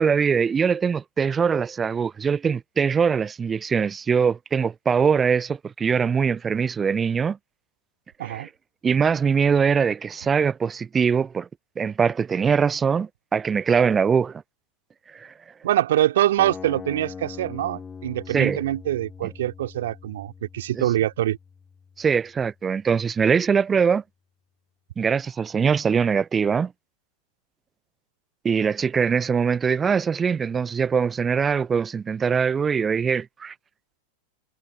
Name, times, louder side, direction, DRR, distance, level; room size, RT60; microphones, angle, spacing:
voice 1, 0.0-7.4 8.2-8.5 8.8-11.5 11.8-14.4 15.1-15.3 18.3-18.6 20.8-20.9 22.0-24.0 25.0-26.7 28.4-33.5, right 6 dB, 20° right, 0.3 m, -22 dB
voice 2, 15.6-21.4, right 13 dB, 60° right, 2.3 m, -24 dB
sound 1, 16.4-22.4, left 6 dB, 15° left, 1.8 m, -42 dB
figure-of-eight pair, 90°, 0 cm